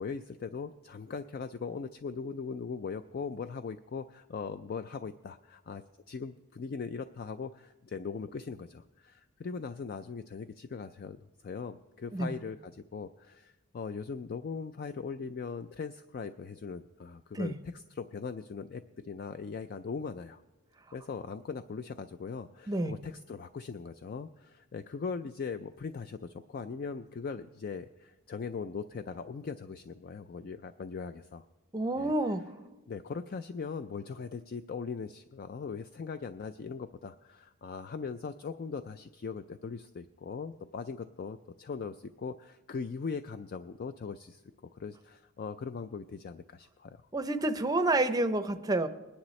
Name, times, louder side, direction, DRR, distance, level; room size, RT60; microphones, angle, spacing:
voice 1, 0.0-20.4 20.9-31.5 32.0-32.1 32.9-44.4 44.7-47.0, left 5 dB, 45° left, 10 dB, 0.3 m, -40 dB
voice 2, 31.7-32.4 47.1-48.9, right 2 dB, 15° right, 9 dB, 0.6 m, -29 dB
21.0 x 10.0 x 3.2 m, 1.1 s
head